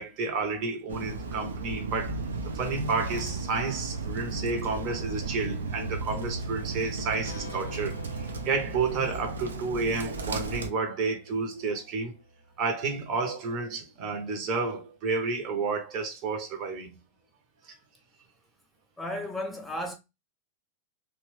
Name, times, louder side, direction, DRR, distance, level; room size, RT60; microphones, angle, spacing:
voice 1, 0.0-12.1 12.6-17.0 17.6-17.7, right 4 dB, 40° right, 0.8 m, -31 dB
Bird, 0.9-10.7, right 3 dB, 70° right, 0.4 m, -35 dB
sound 1, 7.3-12.7, left 4 dB, 75° left, 0.4 m, -49 dB
voice 2, 19.0-20.0, left 1 dB, 5° left, 0.5 m, -34 dB
2.9 x 2.2 x 3.0 m
figure-of-eight pair, 90°, 0 cm